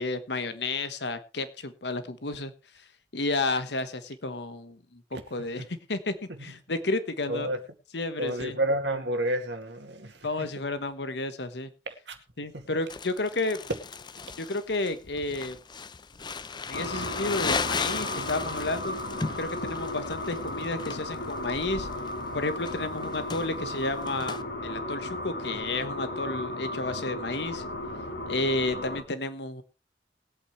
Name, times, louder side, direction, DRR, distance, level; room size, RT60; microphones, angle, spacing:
voice 1, 0.0-2.5 3.1-5.0 5.3-6.1 6.4-7.5 7.9-8.6 10.2-11.7 12.4-13.6 14.4-15.6 16.7-18.9 19.4-21.9 22.3-27.6 28.3-29.6, left 2 dB, 70° left, 1.2 m, -31 dB
voice 2, 5.1-5.7 6.3-6.5 7.3-7.6 8.2-10.5 11.9-12.2 12.5-12.8, right 1 dB, 75° right, 2.1 m, -31 dB
Crumpling crinkling, 12.9-24.4, left 4 dB, 25° left, 0.5 m, -36 dB
sound 1, 16.7-29.0, left 1 dB, 90° left, 2.6 m, -35 dB
21.0 x 8.6 x 3.2 m
head